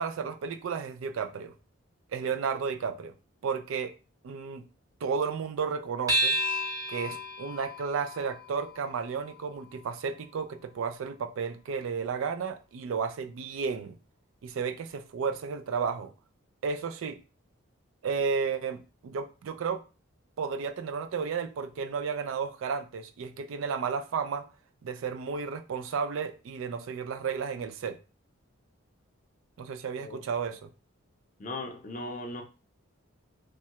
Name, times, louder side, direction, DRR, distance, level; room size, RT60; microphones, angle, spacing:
voice 1, 0.0-1.5 2.1-3.1 3.4-3.9 4.2-4.6 5.0-6.4 6.9-14.0 14.4-16.1 16.6-17.2 18.0-19.8 20.4-24.5 24.8-28.0 29.6-30.7, right 5 dB, 70° right, 0.3 m, -33 dB
sound 1, 6.1-10.8, equal, 15° right, 0.7 m, -33 dB
voice 2, 31.4-32.4, left 2 dB, 35° left, 0.4 m, -38 dB
3.1 x 2.2 x 2.8 m
head